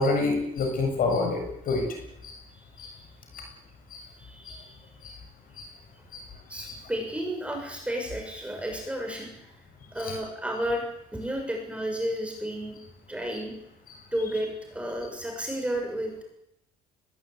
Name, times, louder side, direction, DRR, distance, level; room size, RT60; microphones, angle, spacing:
voice 1, 0.0-2.0 2.2-2.4 2.8-2.9 3.3-3.5 3.9-4.1 4.5-4.6 5.0-5.2 5.6-5.7 6.1-6.2 6.7-6.8 10.0-10.1, left 3 dB, 55° left, 4 dB, 7.1 m, -28 dB
voice 2, 2.5-3.1 4.2-5.1 5.5-5.6 5.9-6.0 6.5-10.8 11.1-12.8 13.1-13.5 14.1-16.2, equal, 5° right, 2 dB, 6.7 m, -33 dB
21.5 x 21.0 x 9.3 m, 0.82 s
cardioid pair, 110°, 17 cm